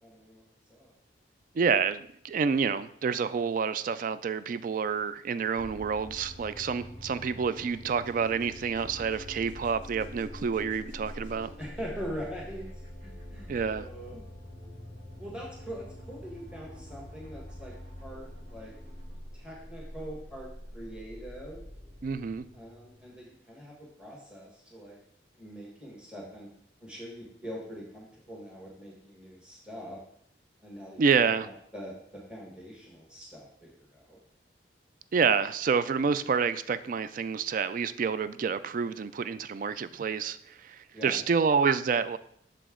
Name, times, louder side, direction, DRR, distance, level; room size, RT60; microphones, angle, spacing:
voice 1, 0.0-0.9 11.6-12.7 13.0-14.2 15.2-17.7 18.0-18.7 19.3-20.5 20.7-21.6 22.5-25.0 25.4-26.5 26.8-30.0 30.6-34.2 40.9-41.2, equal, 5° right, -4 dB, 1.3 m, -43 dB
voice 2, 1.5-11.5 13.5-13.9 22.0-22.5 31.0-31.5 35.1-42.2, right 6 dB, 45° right, 14 dB, 0.3 m, -28 dB
sound 1, 5.5-23.3, left 1 dB, 85° right, 2.5 m, -45 dB
6.8 x 5.2 x 3.6 m, 0.66 s
head